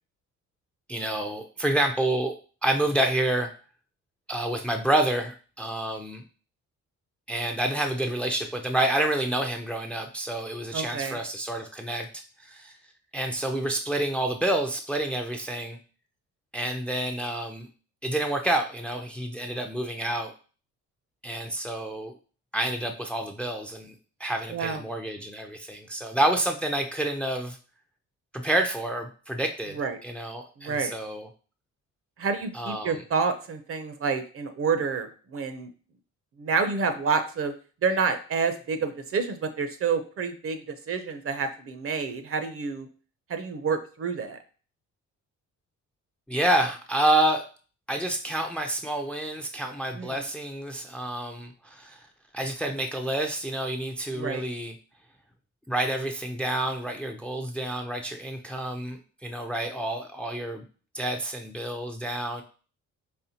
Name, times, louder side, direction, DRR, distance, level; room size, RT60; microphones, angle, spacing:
voice 1, 0.9-2.4 2.6-3.5 4.3-6.2 7.3-12.7 13.1-15.8 16.5-17.7 18.0-20.3 21.2-22.1 22.5-23.9 24.2-27.6 28.3-31.3 32.5-33.0 46.3-47.5 47.9-52.0 52.3-54.7 55.7-59.0 59.2-60.6 60.9-62.4, right 1 dB, 5° left, 5 dB, 0.5 m, -28 dB
voice 2, 10.7-11.2 24.5-24.8 29.7-30.0 30.6-30.9 32.2-35.7 36.4-37.5 37.8-42.9 43.3-44.4 49.9-50.2 54.1-54.4, right 5 dB, 50° right, 8 dB, 0.7 m, -28 dB
4.3 x 3.2 x 2.8 m, 0.38 s
cardioid pair, 90°, 30 cm